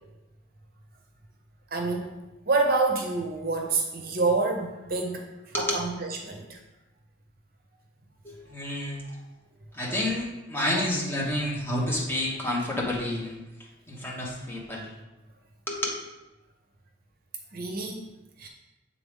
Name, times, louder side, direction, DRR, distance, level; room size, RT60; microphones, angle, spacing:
voice 1, 1.7-2.1 2.5-5.2 5.6-6.6 9.1-9.2 17.5-18.0 18.4-18.5, right 3 dB, 50° right, 3 dB, 0.7 m, -27 dB
voice 2, 8.2-9.0 9.7-13.4 13.9-14.9 15.7-15.9, left 1 dB, 10° left, -3 dB, 1.1 m, -29 dB
7.6 x 3.8 x 3.6 m, 1.0 s
head